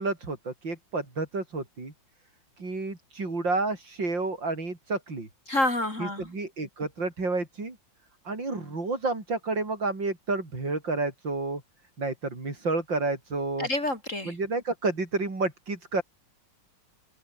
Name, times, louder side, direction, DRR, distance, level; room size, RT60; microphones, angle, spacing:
voice 1, 0.0-1.9 2.6-5.3 6.0-7.8 8.2-11.6 12.0-13.7 14.2-16.0, right 3 dB, 90° right, 6.2 m, -30 dB
voice 2, 5.5-6.3 13.6-14.3, left 1 dB, 40° left, 4.6 m, -28 dB
open air
omnidirectional pair, 2.0 m